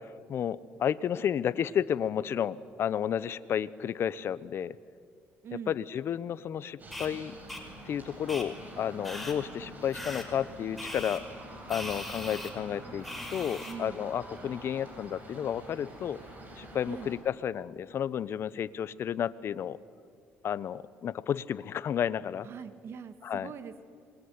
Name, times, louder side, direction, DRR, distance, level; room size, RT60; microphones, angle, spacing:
voice 1, 0.0-4.8 5.7-7.3 7.8-11.2 11.7-16.2 16.6-19.8 20.4-22.5 23.2-23.5, left 9 dB, 55° left, 18 dB, 1.0 m, -32 dB
voice 2, 5.4-5.8 13.6-14.0 16.9-17.1 22.4-23.8, right 7 dB, 55° right, 11 dB, 2.1 m, -42 dB
sound 1, 6.8-17.2, right 1 dB, 35° right, 7.9 m, -46 dB
sound 2, 6.9-7.1 7.5-7.6 8.3-8.4 9.0-9.3 9.9-10.2 10.8-11.2 11.7-12.5 13.0-13.7, left 1 dB, 5° left, 5.0 m, -39 dB
26.5 x 22.0 x 9.7 m, 2.2 s
cardioid pair, 90°, 5 cm